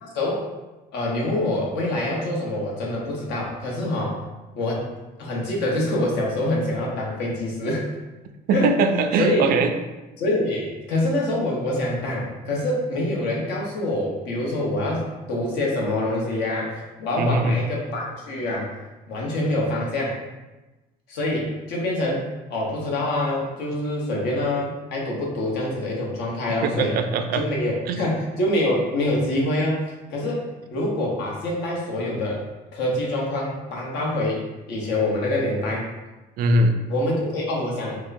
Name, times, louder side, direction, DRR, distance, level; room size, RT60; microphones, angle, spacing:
voice 1, 0.0-0.4 0.9-4.2 4.5-4.8 5.2-7.8 8.5-8.7 9.2-9.5 10.2-18.7 19.1-20.2 21.1-22.2 22.5-26.9 27.3-29.8 30.1-30.4 30.7-32.4 32.7-35.9 36.9-38.0, left 1 dB, 85° left, -3 dB, 1.0 m, -25 dB
voice 2, 8.5-9.7 17.2-17.6 26.6-27.4 27.9-28.0 36.4-36.8, right 2 dB, 60° right, 7 dB, 0.4 m, -21 dB
4.5 x 2.1 x 2.6 m, 1.1 s
cardioid pair, 110°, 17 cm